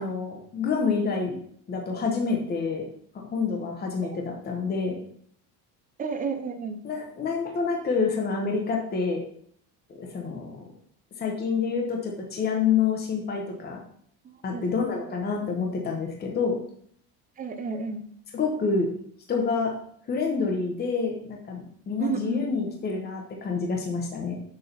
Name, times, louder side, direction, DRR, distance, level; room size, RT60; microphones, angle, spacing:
voice 1, 0.0-1.3 1.7-2.9 3.3-5.0 6.8-9.2 10.0-10.6 11.2-13.8 14.4-16.6 18.3-18.9 19.3-19.7 20.1-24.3, left 5 dB, 25° left, 1 dB, 1.1 m, -27 dB
voice 2, 6.0-6.8 14.2-14.7 15.1-15.2 17.4-18.0 22.0-22.6, right 5 dB, 20° right, 7 dB, 0.7 m, -32 dB
6.8 x 3.7 x 5.9 m, 0.62 s
cardioid pair, 160°, 40 cm